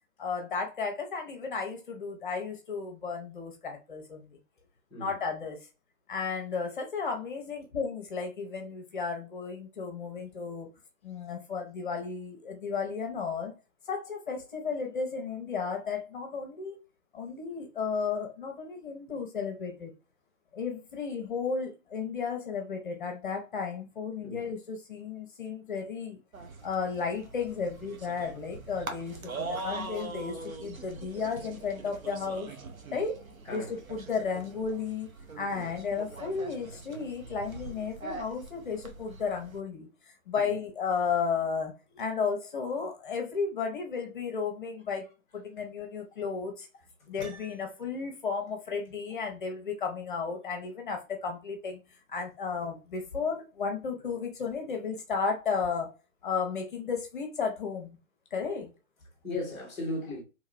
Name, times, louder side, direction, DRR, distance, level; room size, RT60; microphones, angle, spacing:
voice 1, 0.2-4.4 5.0-5.7 6.1-10.7 11.0-13.5 13.9-16.8 17.1-19.9 20.5-26.2 26.6-32.5 32.9-35.1 35.4-45.1 45.3-46.7 47.1-51.8 52.1-55.9 56.2-58.0 58.3-58.7, left 5 dB, 40° left, 0.7 m, -34 dB
sound 1, 26.3-39.6, right 3 dB, 85° right, 0.8 m, -42 dB
voice 2, 33.4-33.8 35.5-35.7 40.3-40.5 59.2-60.2, left 2 dB, 5° left, 0.7 m, -36 dB
Piano, 47.2-48.0, right 4 dB, 60° right, 0.9 m, -50 dB
2.9 x 2.9 x 2.4 m
figure-of-eight pair, 135°, 40 cm